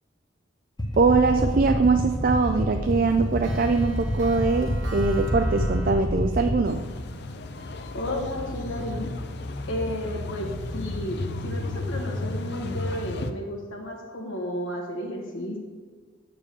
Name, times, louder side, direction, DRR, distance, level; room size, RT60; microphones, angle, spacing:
sound 1, 0.8-6.5, equal, 20° left, 0.9 m, -28 dB
voice 1, 1.0-6.9, right 4 dB, 45° right, 7 dB, 0.3 m, -22 dB
Clock, 1.2-1.7 2.1-2.2 2.5-6.0, equal, 75° right, 1.0 m, -42 dB
sound 2, 6.6-13.3, left 2 dB, 55° left, 0.5 m, -33 dB
voice 2, 7.9-9.1 9.7-15.6, equal, 80° left, 1 dB, 1.5 m, -32 dB
6.8 x 4.8 x 6.8 m, 1.5 s
head